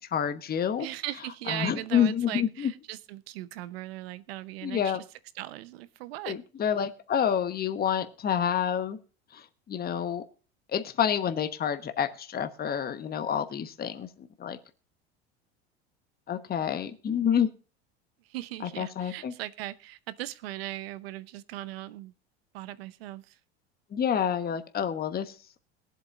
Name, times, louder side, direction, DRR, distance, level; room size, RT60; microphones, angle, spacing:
voice 1, 0.1-0.9 1.5-2.7 4.6-5.0 6.3-9.0 9.3-10.2 10.7-14.6 16.3-17.5 18.8-19.3 23.9-25.3, left 8 dB, 30° left, 1.2 m, -28 dB
voice 2, 0.8-5.0 5.3-6.4 18.3-22.1 22.5-23.4, right 15 dB, 75° right, 0.8 m, -38 dB
21.5 x 8.1 x 2.5 m
hypercardioid pair, 80°, 31 cm